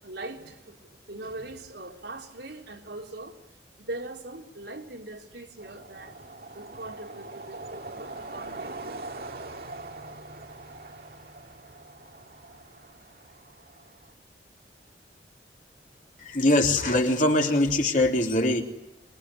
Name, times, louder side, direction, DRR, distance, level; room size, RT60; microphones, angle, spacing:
voice 1, 0.0-3.4 3.8-6.2 6.5-9.4, right 2 dB, 75° right, 3.6 m, -41 dB
sound 1, 5.6-14.1, right 2 dB, 55° right, 2.2 m, -42 dB
voice 2, 16.2-18.6, left 1 dB, 45° left, 3.3 m, -22 dB
25.0 x 23.0 x 9.9 m
head